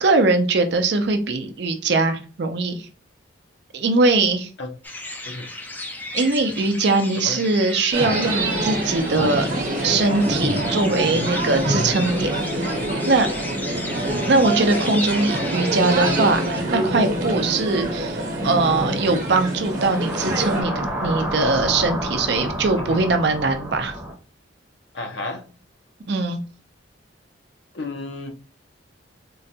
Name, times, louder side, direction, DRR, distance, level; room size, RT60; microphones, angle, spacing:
voice 1, 0.0-2.9 3.7-4.5 6.1-9.5 9.8-12.7 13.1-13.3 14.2-23.9 26.1-26.4, right 3 dB, 60° right, 7 dB, 0.5 m, -21 dB
sound 1, 4.8-16.6, left 2 dB, 10° left, 0.3 m, -34 dB
voice 2, 7.1-7.4 22.8-23.1 24.9-25.4 27.7-28.3, left 2 dB, 65° left, 4 dB, 0.6 m, -32 dB
sound 2, 7.9-20.6, right 1 dB, 45° right, 0.9 m, -25 dB
sound 3, 19.7-24.1, right 1 dB, 10° right, 0.7 m, -29 dB
3.7 x 2.2 x 2.7 m, 0.37 s
head